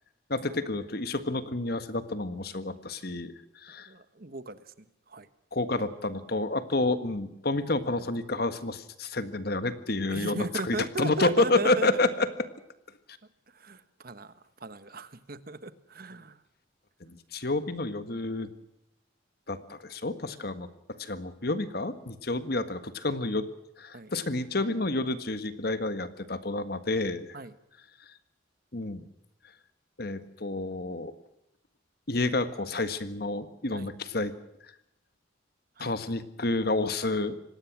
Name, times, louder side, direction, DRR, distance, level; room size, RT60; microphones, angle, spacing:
voice 1, 0.3-3.3 3.6-3.9 5.5-12.3 17.0-18.5 19.5-23.5 23.8-27.3 28.7-29.0 30.0-31.1 32.1-34.3 35.8-37.4, left 2 dB, 50° left, 11 dB, 1.6 m, -29 dB
voice 2, 3.9-5.3 10.1-12.2 13.5-16.4 23.9-24.1 27.3-27.5 33.7-33.9 35.8-36.0, right 3 dB, 50° right, 13 dB, 1.3 m, -37 dB
25.5 x 19.0 x 6.2 m, 0.81 s
head